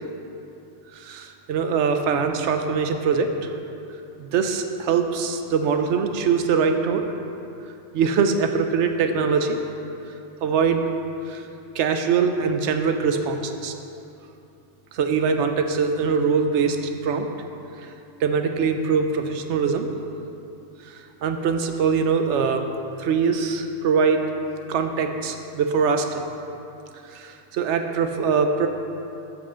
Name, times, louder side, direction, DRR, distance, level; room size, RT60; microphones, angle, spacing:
voice 1, 0.9-3.3 4.2-7.0 7.9-9.6 10.4-10.8 11.3-11.4 11.8-13.7 14.9-16.8 17.0-17.3 18.2-19.9 21.2-22.6 23.0-24.2 24.7-26.3 27.1-28.7, right 5 dB, 80° right, 6 dB, 1.0 m, -22 dB
8.0 x 5.8 x 5.5 m, 2.7 s
omnidirectional pair, 1.2 m